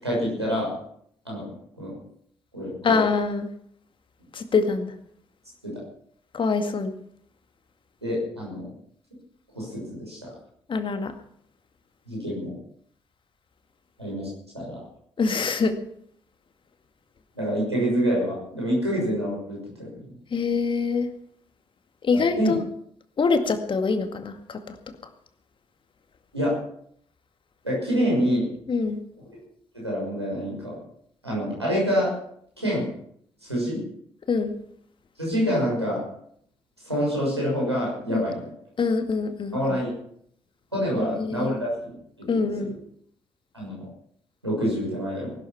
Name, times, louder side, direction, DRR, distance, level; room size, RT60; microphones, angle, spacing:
voice 1, 0.0-0.7 1.2-1.5 1.8-1.9 2.5-3.0 5.6-5.8 8.0-8.7 9.5-10.3 12.1-12.6 14.0-14.3 14.5-14.8 17.3-20.1 22.1-22.5 26.3-26.5 27.6-28.5 29.7-30.8 31.2-32.1 32.6-32.9 33.4-33.8 35.2-36.0 36.8-38.5 39.5-39.9 40.7-41.9 42.4-42.5 43.5-43.9 44.4-45.3, equal, 90° right, -5 dB, 6.3 m, -26 dB
voice 2, 2.8-3.5 4.3-4.9 6.3-6.9 10.7-11.1 15.2-15.8 20.3-21.1 22.0-22.6 23.2-24.8 28.7-29.0 34.3-34.6 38.1-38.2 38.8-39.6 41.0-41.6 42.3-42.7, left 4 dB, 40° left, 7 dB, 2.1 m, -24 dB
20.0 x 12.5 x 5.9 m, 0.67 s
figure-of-eight pair, 45°, 14 cm